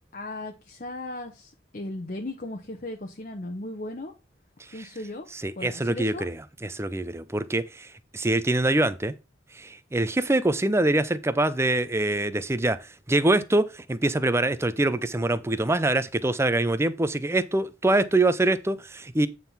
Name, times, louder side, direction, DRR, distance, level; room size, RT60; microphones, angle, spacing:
voice 1, 0.1-4.1 4.7-5.3 5.6-6.3, left 2 dB, 45° left, 1.0 m, -36 dB
voice 2, 5.3-9.1 9.5-19.3, right 2 dB, 15° right, 0.5 m, -24 dB
9.4 x 3.8 x 5.6 m
head